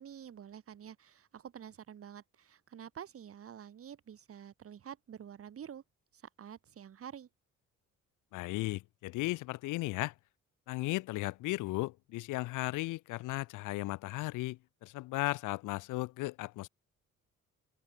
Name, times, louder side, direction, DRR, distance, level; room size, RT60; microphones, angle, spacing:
voice 1, 0.0-5.8 6.1-7.3, right 8 dB, 50° right, 1.4 m, -48 dB
voice 2, 8.3-10.1 10.7-16.7, left 19 dB, 85° left, 0.5 m, -36 dB
cardioid pair, 90°, 30 cm